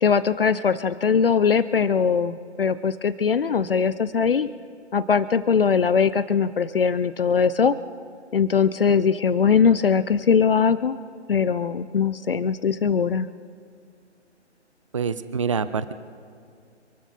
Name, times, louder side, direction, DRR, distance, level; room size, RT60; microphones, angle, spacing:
voice 1, 0.0-4.5 4.9-7.8 8.3-11.0 11.3-13.3, left 6 dB, 50° left, 14 dB, 0.6 m, -21 dB
voice 2, 14.9-15.9, right 6 dB, 30° right, 14 dB, 0.5 m, -26 dB
27.0 x 13.0 x 4.2 m, 2.3 s
figure-of-eight pair, 140°, 35 cm